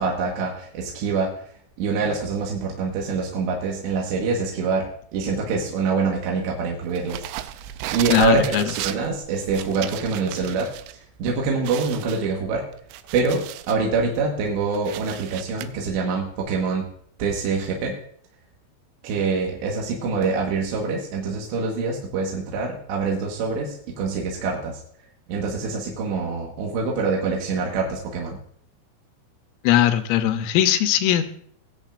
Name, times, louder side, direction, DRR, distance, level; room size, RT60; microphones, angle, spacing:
voice 1, 0.0-1.3 1.8-7.3 7.9-10.7 11.2-12.6 13.1-16.9 17.2-18.0 19.0-24.8 25.3-28.4, right 4 dB, 70° right, -1 dB, 3.3 m, -25 dB
sound 1, 7.0-10.9 11.3-11.4 11.6-13.8 14.3-15.7, right 13 dB, 85° right, 2.6 m, -35 dB
voice 2, 8.1-8.6 29.6-31.2, left 11 dB, 85° left, 9 dB, 3.3 m, -19 dB
19.5 x 8.2 x 2.5 m, 0.62 s
omnidirectional pair, 5.8 m